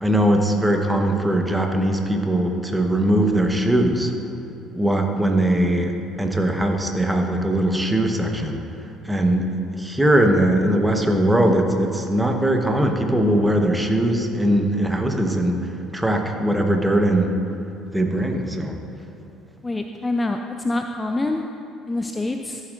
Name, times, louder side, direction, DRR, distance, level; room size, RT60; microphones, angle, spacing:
voice 1, 0.0-4.1 4.7-8.6 9.0-17.4 17.9-18.8, right 1 dB, 10° right, 3 dB, 1.1 m, -20 dB
voice 2, 19.6-21.4 21.9-22.6, left 2 dB, 20° left, 5 dB, 0.4 m, -25 dB
14.0 x 7.2 x 2.5 m, 2.7 s
hypercardioid pair, 55°, 0 cm